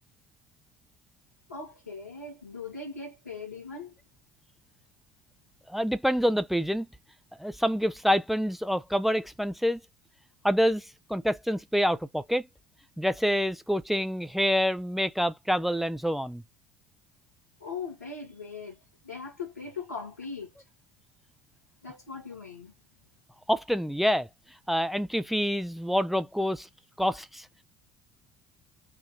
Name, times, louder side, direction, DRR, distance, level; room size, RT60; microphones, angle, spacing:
voice 1, 1.5-3.9 17.6-20.5 21.8-22.7, left 4 dB, 85° left, 1.8 m, -40 dB
voice 2, 5.7-6.9 7.4-9.8 10.4-12.5 13.0-16.4 23.5-24.3 24.7-26.7 27.0-27.5, equal, ahead, 0.7 m, -27 dB
4.7 x 2.7 x 3.6 m
figure-of-eight pair, 60°, 8 cm